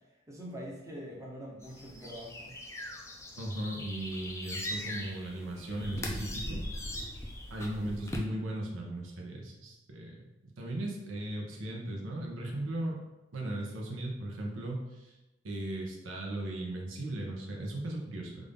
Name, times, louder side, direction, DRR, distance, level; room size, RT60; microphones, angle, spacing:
voice 1, 0.3-2.6, equal, 15° right, -4 dB, 0.7 m, -44 dB
sound 1, 1.6-8.2, left 1 dB, 15° left, 0.4 m, -40 dB
voice 2, 3.3-7.0 7.5-13.0 13.3-15.2 15.4-18.4, right 1 dB, 80° right, -1 dB, 0.8 m, -37 dB
3.7 x 2.5 x 3.4 m, 1.0 s
head